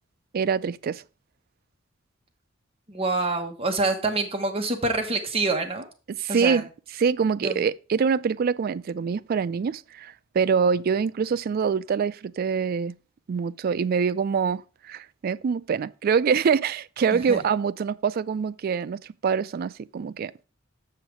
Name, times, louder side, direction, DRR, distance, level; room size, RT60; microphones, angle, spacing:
voice 1, 0.3-1.0 6.1-6.7 7.0-12.9 13.3-20.3, right 6 dB, 50° right, 0.3 m, -25 dB
voice 2, 2.9-5.9 6.3-6.6 7.4-7.6 17.1-17.4, right 2 dB, 30° right, 1.2 m, -26 dB
7.0 x 5.8 x 4.7 m
head